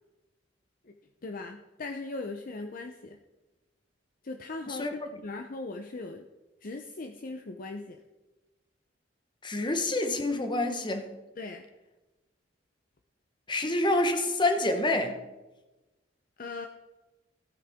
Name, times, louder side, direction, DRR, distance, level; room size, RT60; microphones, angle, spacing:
voice 1, 1.2-3.2 4.2-6.3 6.6-8.0 11.4-11.6 16.4-16.7, left 3 dB, 50° left, 0.6 m, -39 dB
voice 2, 9.4-11.1 13.5-15.2, left 2 dB, 25° left, 1.1 m, -27 dB
15.5 x 8.7 x 3.6 m
head